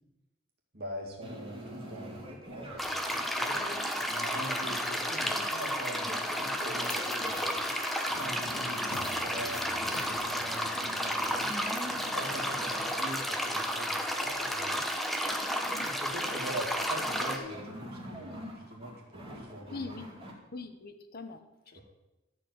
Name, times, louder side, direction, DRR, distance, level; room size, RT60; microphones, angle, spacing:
voice 1, 0.7-3.6 4.1-7.7 8.1-11.5 12.1-14.9 15.8-19.9 21.7-21.8, right 1 dB, 50° right, 0 dB, 2.5 m, -43 dB
sound 1, 1.2-20.3, right 1 dB, 25° right, 2.6 m, -45 dB
sound 2, 2.8-17.4, equal, ahead, 0.8 m, -32 dB
sound 3, 6.8-13.1, left 5 dB, 85° left, 1.1 m, -50 dB
voice 2, 15.7-16.4 19.7-20.1 20.5-21.4 21.7-21.8, left 3 dB, 50° left, 8 dB, 0.9 m, -43 dB
13.0 x 4.9 x 8.0 m, 1.0 s
head